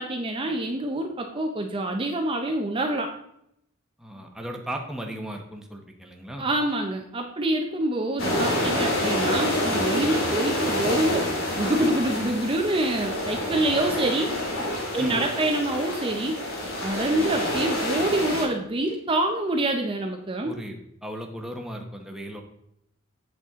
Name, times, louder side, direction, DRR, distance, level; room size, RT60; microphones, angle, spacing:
voice 1, 0.0-3.1 6.4-11.3 11.6-14.3 14.9-16.4 16.8-20.5, right 1 dB, 25° right, 3 dB, 0.7 m, -26 dB
voice 2, 4.0-6.5 10.1-10.3 12.2-12.3 15.0-15.2 17.1-17.3 20.4-22.4, equal, ahead, 1 dB, 1.1 m, -36 dB
sound 1, 8.2-18.4, left 1 dB, 85° left, 2.6 m, -27 dB
8.3 x 7.3 x 3.6 m, 0.76 s
head